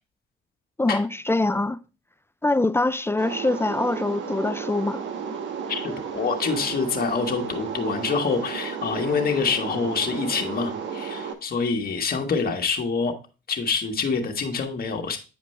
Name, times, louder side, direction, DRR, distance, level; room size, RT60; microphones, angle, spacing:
voice 1, 0.8-1.8 2.4-5.0, left 2 dB, 10° left, 0.4 m, -24 dB
sound 1, 3.2-11.3, right 6 dB, 70° right, 1.2 m, -33 dB
voice 2, 5.7-13.2 13.5-15.2, left 5 dB, 50° left, 1.5 m, -26 dB
9.0 x 5.0 x 3.2 m
cardioid pair, 90°, 20 cm